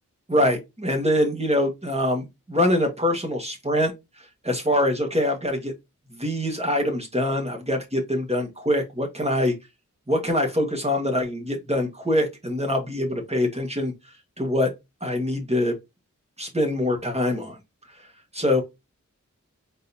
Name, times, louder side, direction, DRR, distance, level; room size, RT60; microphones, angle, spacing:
voice 1, 0.3-3.9 4.2-5.7 6.1-9.5 10.1-13.9 14.4-14.7 15.0-15.8 16.4-17.6 18.3-18.6, left 1 dB, 20° right, 1.5 m, -24 dB
4.0 x 3.9 x 2.7 m
wide cardioid pair, 80°, 31 cm